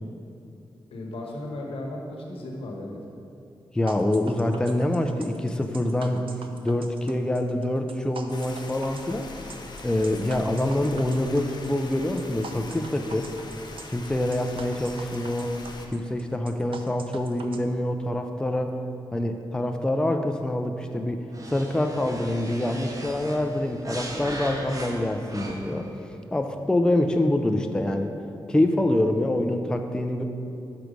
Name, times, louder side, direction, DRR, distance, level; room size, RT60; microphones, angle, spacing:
voice 1, 0.9-3.0, left 1 dB, 85° left, 0 dB, 1.0 m, -35 dB
voice 2, 3.7-6.2 6.6-9.3 9.8-13.3 13.9-15.6 15.9-18.8 19.1-25.9 26.3-28.1 28.5-30.2, left 1 dB, 10° left, 4 dB, 0.4 m, -25 dB
sound 1, 3.9-17.6, right 4 dB, 70° right, 0.5 m, -44 dB
sound 2, 8.3-15.9, left 3 dB, 50° left, 0.6 m, -42 dB
sound 3, 21.3-25.9, right 1 dB, 40° right, 0.7 m, -38 dB
6.4 x 4.6 x 5.2 m, 2.6 s
cardioid pair, 90°, 9 cm